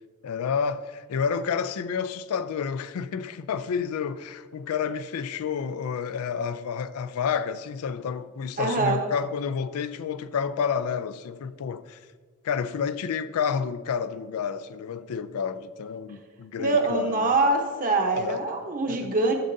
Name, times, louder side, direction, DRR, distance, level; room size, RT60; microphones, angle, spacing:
voice 1, 0.2-12.0 12.4-17.4 18.1-18.5 18.9-19.1, left 6 dB, 85° left, 0.4 m, -30 dB
voice 2, 8.6-9.0 16.6-19.3, right 3 dB, 40° right, 0.9 m, -24 dB
11.5 x 6.5 x 2.6 m
head